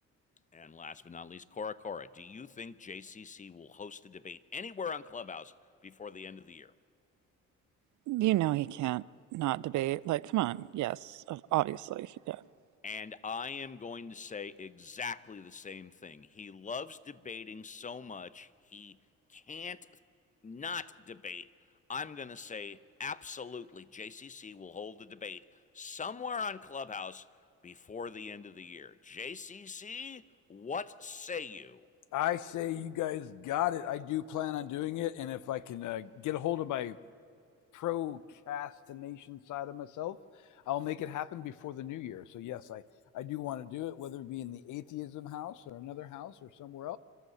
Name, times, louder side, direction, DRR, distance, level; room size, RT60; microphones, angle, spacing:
voice 1, 0.5-5.5 5.8-6.7 12.8-19.0 19.3-19.9 20.4-21.5 21.9-25.4 25.7-27.2 27.6-30.2 30.5-31.9, left 5 dB, 25° left, 0.8 m, -41 dB
voice 2, 8.1-9.0 9.3-12.4, right 16 dB, 75° right, 0.5 m, -31 dB
voice 3, 32.1-37.0 37.7-40.2 40.7-42.8 43.1-47.0, left 13 dB, 80° left, 0.8 m, -36 dB
27.0 x 13.0 x 7.9 m
cardioid pair, 90°, 30 cm